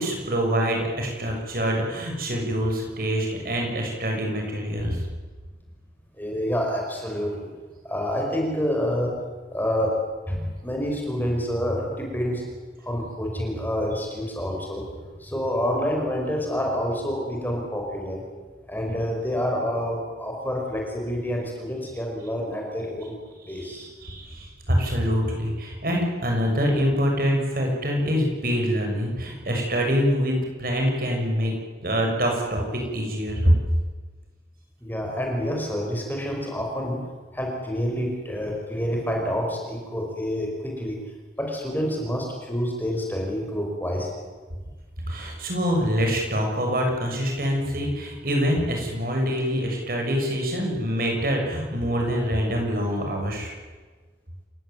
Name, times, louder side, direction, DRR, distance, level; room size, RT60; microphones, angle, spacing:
voice 1, 0.0-5.1 23.4-31.5 31.8-33.6 45.1-53.5, equal, 55° right, 1 dB, 7.1 m, -25 dB
voice 2, 6.2-7.5 7.8-9.1 9.5-10.0 10.3-12.4 12.8-14.8 15.2-18.2 18.7-23.1 23.5-23.9 34.8-37.0 37.3-41.0 41.4-44.2, equal, 10° left, 0 dB, 5.4 m, -28 dB
28.5 x 17.0 x 9.4 m, 1.4 s
head